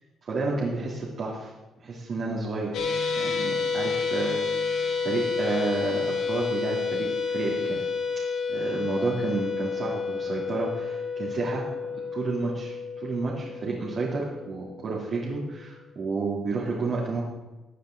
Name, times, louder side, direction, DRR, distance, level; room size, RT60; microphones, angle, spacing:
voice 1, 0.2-1.5 1.8-2.9 3.1-4.4 4.7-4.8 5.0-7.8 8.5-11.6 11.9-17.2, right 3 dB, 55° right, -5 dB, 3.1 m, -31 dB
sound 1, 2.7-15.1, left 5 dB, 80° left, 2.8 m, -30 dB
18.0 x 9.5 x 4.0 m, 1.1 s
cardioid pair, 90°, 0 cm